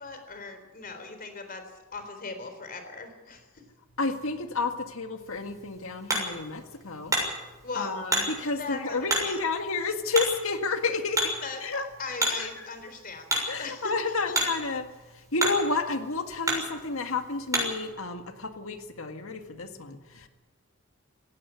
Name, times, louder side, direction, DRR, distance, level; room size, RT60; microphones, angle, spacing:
voice 1, 0.0-3.5 7.6-8.0 8.6-9.4 11.4-14.4, left 4 dB, 40° left, 8 dB, 3.8 m, -39 dB
voice 2, 4.0-7.2 7.7-11.9 12.4-12.7 13.5-20.3, left 3 dB, 65° left, 7 dB, 1.9 m, -31 dB
Hammer, 5.2-17.9, right 1 dB, 15° right, 6.7 m, -33 dB
18.0 x 16.5 x 9.7 m, 1.2 s
head